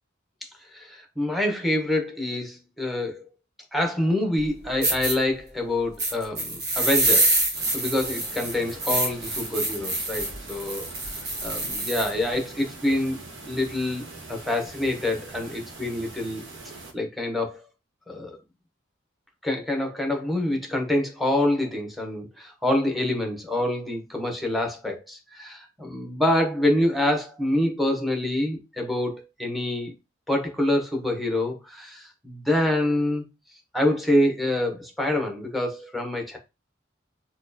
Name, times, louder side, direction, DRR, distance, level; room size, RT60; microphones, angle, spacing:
voice 1, 0.7-3.2 3.7-7.3 7.7-10.9 11.4-13.2 13.5-14.0 14.3-16.4 16.9-17.6 18.1-18.4 19.4-29.9 30.3-33.2 33.7-36.4, left 1 dB, ahead, 0.8 m, -26 dB
sound 1, 4.4-4.5 4.8-5.1 6.0-12.1, right 2 dB, 55° right, 1.2 m, -26 dB
sound 2, 7.5-16.9, right 2 dB, 85° right, 1.0 m, -43 dB
4.3 x 2.2 x 2.6 m
head